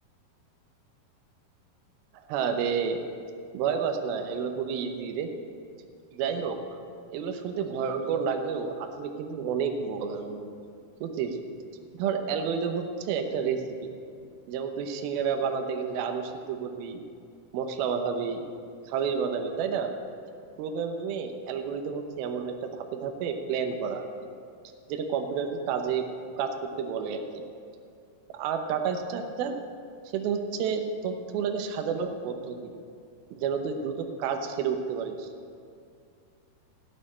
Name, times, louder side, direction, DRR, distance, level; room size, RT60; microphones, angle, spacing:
voice 1, 2.3-3.0 3.5-5.3 6.1-6.8 7.1-10.5 11.0-11.4 11.9-13.9 14.5-17.0 17.5-18.4 18.9-19.9 20.6-24.1 24.9-26.1 26.4-27.2 28.3-29.6 30.1-32.7 33.4-35.3, right 6 dB, 75° right, 5 dB, 2.7 m, -30 dB
16.0 x 6.6 x 8.6 m, 2.3 s
omnidirectional pair, 4.6 m